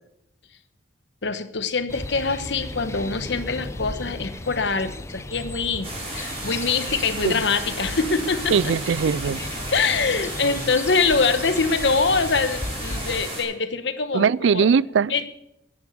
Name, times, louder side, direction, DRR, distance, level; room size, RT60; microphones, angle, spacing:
voice 1, 1.2-8.6 9.7-14.7 15.1-15.3, left 4 dB, 70° left, 1.1 m, -24 dB
sound 1, 1.9-13.3, left 2 dB, 15° left, 0.6 m, -35 dB
sound 2, 5.8-13.4, right 1 dB, 30° right, 5.7 m, -34 dB
voice 2, 8.5-9.4 14.1-15.1, right 6 dB, 85° right, 0.4 m, -20 dB
11.0 x 9.7 x 8.4 m
head